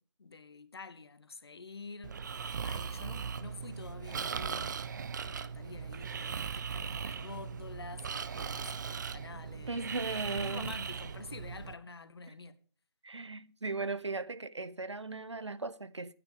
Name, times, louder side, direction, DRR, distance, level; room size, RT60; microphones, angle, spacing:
voice 1, 0.2-4.8 5.2-9.8 10.1-12.5, left 4 dB, 60° left, 1.2 m, -48 dB
Breathing, 2.0-11.7, right 6 dB, 40° right, 0.7 m, -39 dB
voice 2, 9.7-10.7 13.0-16.1, right 3 dB, 80° right, 0.9 m, -37 dB
9.9 x 9.3 x 5.0 m
figure-of-eight pair, 145°, 15 cm